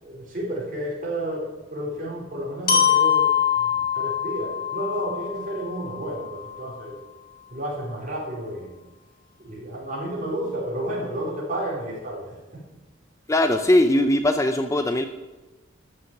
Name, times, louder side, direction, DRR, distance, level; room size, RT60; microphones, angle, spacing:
voice 1, 0.0-7.0 7.5-8.7 9.4-12.7, right 1 dB, 45° right, -4 dB, 4.6 m, -31 dB
Glockenspiel, 2.7-6.6, left 8 dB, 50° left, 2.3 m, -24 dB
voice 2, 13.3-15.1, left 1 dB, 15° left, 7 dB, 0.6 m, -20 dB
13.0 x 6.3 x 9.2 m, 1.2 s
head